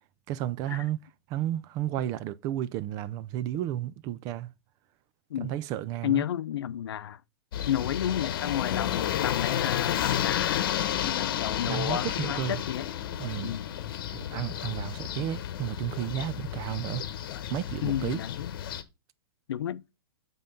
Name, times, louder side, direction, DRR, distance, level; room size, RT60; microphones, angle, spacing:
voice 1, 0.3-1.0 1.3-4.5 5.4-6.2 11.7-12.6 13.2-13.5 14.1-17.0 17.5-18.2, right 12 dB, 25° right, 0.3 m, -32 dB
voice 2, 6.0-7.2 7.7-10.7 11.0-12.9 13.4-13.7 17.8-18.5 19.5-19.8, left 10 dB, 80° left, 0.6 m, -31 dB
sound 1, 7.5-18.8, left 10 dB, 60° left, 1.0 m, -31 dB
7.6 x 3.8 x 5.3 m
hypercardioid pair, 150°, 13 cm